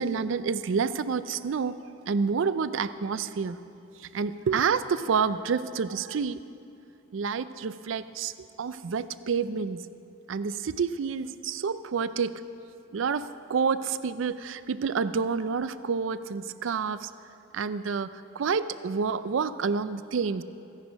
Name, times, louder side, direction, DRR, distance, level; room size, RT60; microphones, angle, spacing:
voice 1, 0.0-1.8 2.1-3.6 4.0-6.4 7.1-9.8 10.3-12.4 12.9-17.1 17.5-20.4, right 5 dB, 75° right, 14 dB, 0.4 m, -28 dB
15.5 x 10.5 x 5.2 m, 2.5 s
head